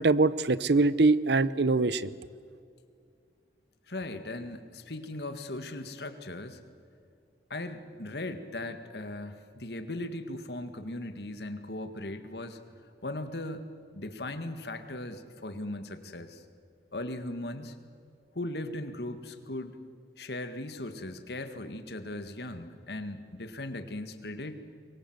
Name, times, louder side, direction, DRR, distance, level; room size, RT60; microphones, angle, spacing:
voice 1, 0.0-2.1, right 3 dB, 75° right, 18 dB, 0.7 m, -23 dB
voice 2, 3.9-6.6 7.5-12.6 13.0-16.4 16.9-17.8 18.4-19.8 20.2-24.5, left 1 dB, 70° left, 9 dB, 1.9 m, -38 dB
25.0 x 22.0 x 8.0 m, 2.3 s
head